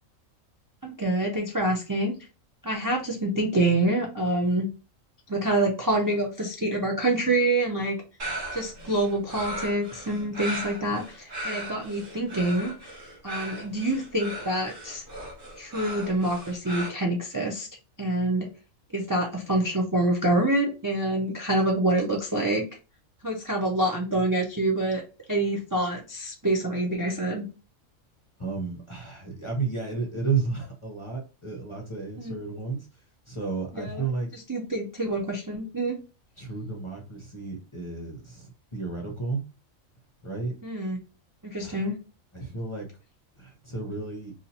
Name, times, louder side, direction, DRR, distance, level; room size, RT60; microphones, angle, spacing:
voice 1, 0.8-2.1 2.6-4.7 5.3-8.0 8.5-12.7 13.2-15.0 15.6-17.7 18.0-18.5 18.9-22.6 23.2-25.0 25.3-27.4 32.2-32.3 33.7-34.0 34.3-36.0 40.6-41.0 41.4-42.0, right 1 dB, 30° right, -1 dB, 0.4 m, -26 dB
sound 1, 8.2-16.9, right 1 dB, 45° right, 1.2 m, -37 dB
voice 2, 28.4-34.3 36.4-39.4 40.2-40.5 41.6-41.8 42.3-42.9 43.4-44.3, right 4 dB, 30° left, 0 dB, 0.6 m, -32 dB
2.8 x 2.5 x 4.0 m, 0.32 s
omnidirectional pair, 1.4 m